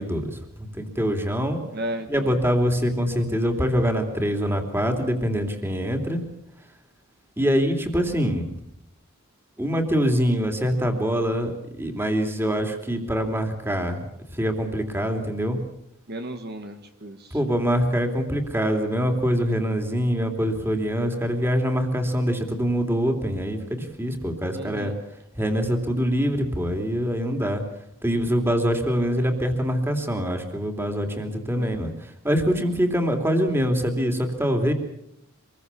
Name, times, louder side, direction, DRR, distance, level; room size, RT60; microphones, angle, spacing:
voice 1, 0.0-1.6 2.1-6.2 7.4-8.5 9.6-14.0 14.3-15.6 17.3-24.9 25.3-27.6 28.0-34.7, equal, 10° right, 5 dB, 3.1 m, -24 dB
voice 2, 1.7-2.3 16.1-17.4 24.5-24.9 31.5-31.8, right 1 dB, 45° right, 6 dB, 1.7 m, -34 dB
26.5 x 21.5 x 7.0 m, 0.78 s
head